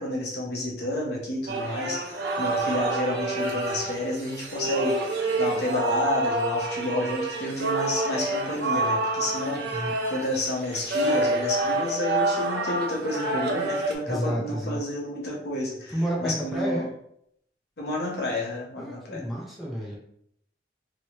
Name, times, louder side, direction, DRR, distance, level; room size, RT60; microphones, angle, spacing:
voice 1, 0.0-16.9 17.8-19.2, left 1 dB, 65° left, -2 dB, 0.9 m, -30 dB
sound 1, 1.5-13.9, right 2 dB, 65° right, 0.6 m, -27 dB
voice 2, 14.1-14.8 15.9-16.9 18.8-20.0, right 1 dB, ahead, -5 dB, 0.7 m, -30 dB
3.1 x 3.0 x 2.9 m, 0.72 s
head